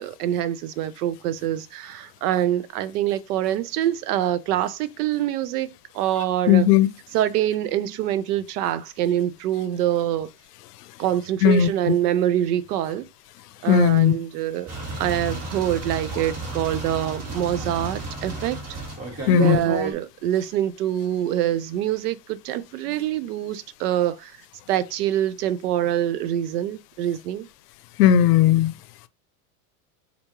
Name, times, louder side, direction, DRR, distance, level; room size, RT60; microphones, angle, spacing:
voice 1, 0.0-5.7 5.9-6.7 7.1-10.3 11.0-13.1 13.6-18.6 19.3-24.3 24.7-27.5, right 11 dB, 85° right, 0.6 m, -25 dB
voice 2, 6.5-6.9 11.4-11.7 13.7-14.1 19.3-19.6 28.0-28.7, left 10 dB, 85° left, 0.6 m, -16 dB
sound 1, 14.7-19.9, right 2 dB, 35° right, 1.7 m, -33 dB
4.6 x 2.6 x 2.9 m
supercardioid pair, 120°, 45 cm